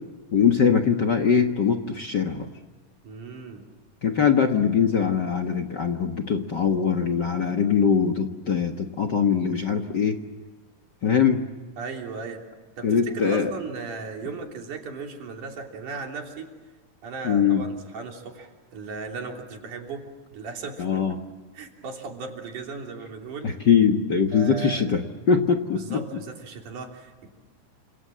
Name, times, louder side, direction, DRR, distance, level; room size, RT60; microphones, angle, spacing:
voice 1, 0.3-2.5 4.0-10.2 11.0-11.5 12.8-13.5 17.2-17.6 20.8-21.2 23.4-25.0 25.3-26.0, left 6 dB, 45° left, 4 dB, 1.5 m, -22 dB
voice 2, 3.0-3.7 11.8-12.4 12.8-16.5 17.0-20.0 20.3-21.0 21.5-23.5 24.3-24.8 25.7-27.3, right 4 dB, 80° right, 2 dB, 4.7 m, -37 dB
29.0 x 27.0 x 7.5 m, 1.3 s
omnidirectional pair, 3.5 m